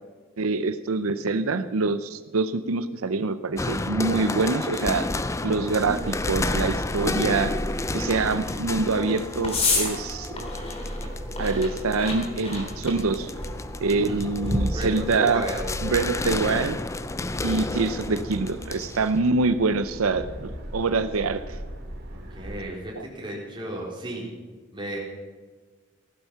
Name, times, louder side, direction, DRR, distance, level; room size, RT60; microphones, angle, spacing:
voice 1, 0.4-5.1 5.4-7.5 7.9-10.3 11.4-13.3 13.8-15.4 15.8-16.8 17.4-21.6 23.0-23.1, right 3 dB, 90° right, 11 dB, 0.7 m, -25 dB
sound 1, 3.6-19.3, left 2 dB, 15° left, 0.4 m, -32 dB
sound 2, 5.0-16.0, left 2 dB, 30° left, 3.4 m, -33 dB
sound 3, 5.9-22.6, equal, 50° right, 2.5 m, -38 dB
voice 2, 13.9-14.2 14.7-15.6 22.1-24.3 24.7-25.0, right 1 dB, 25° right, -3 dB, 4.0 m, -34 dB
15.5 x 12.0 x 5.8 m, 1.4 s
head